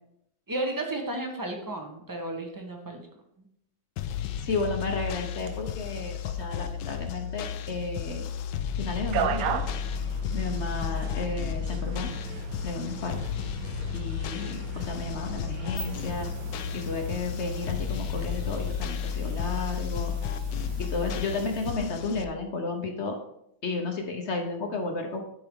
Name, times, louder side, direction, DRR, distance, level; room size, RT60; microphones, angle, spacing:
voice 1, 0.5-3.1 3.4-3.5 16.3-16.9 20.5-21.0, right 1 dB, 15° right, 2 dB, 0.7 m, -35 dB
sound 1, 4.0-22.3, left 8 dB, 75° left, 1.2 m, -33 dB
voice 2, 4.4-8.3 8.8-9.6 10.3-12.1 12.6-13.2 13.9-16.3 16.8-20.1 20.8-23.2 23.6-25.2, left 3 dB, 50° left, 4 dB, 0.9 m, -33 dB
sound 2, 9.0-17.2, right 7 dB, 70° right, 0.8 m, -36 dB
sound 3, 15.5-21.7, right 1 dB, 35° right, 1.6 m, -43 dB
11.5 x 4.6 x 3.6 m, 0.76 s
omnidirectional pair, 2.1 m